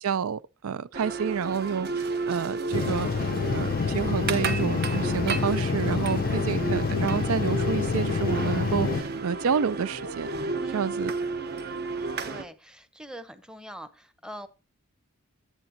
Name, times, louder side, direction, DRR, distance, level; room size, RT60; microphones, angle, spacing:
voice 1, 0.0-3.1 3.5-10.3 10.7-11.1 11.5-11.6, right 6 dB, 80° right, 0.4 m, -29 dB
sound 1, 0.9-12.4, right 3 dB, 50° right, 0.9 m, -32 dB
sound 2, 2.7-9.0, left 5 dB, 45° left, 0.4 m, -27 dB
voice 2, 10.6-11.0 12.2-14.5, equal, 5° right, 0.8 m, -43 dB
10.5 x 8.4 x 2.8 m
head